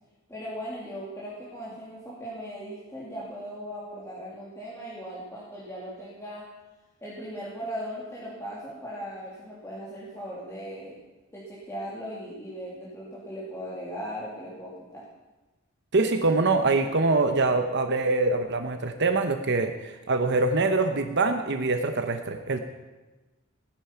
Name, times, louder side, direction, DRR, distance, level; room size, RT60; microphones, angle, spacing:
voice 1, 0.3-6.5 7.0-10.9 11.3-15.0, equal, 15° left, -8 dB, 2.8 m, -38 dB
voice 2, 15.9-22.6, right 3 dB, 55° right, 6 dB, 1.0 m, -24 dB
16.5 x 10.5 x 5.8 m, 1.1 s
head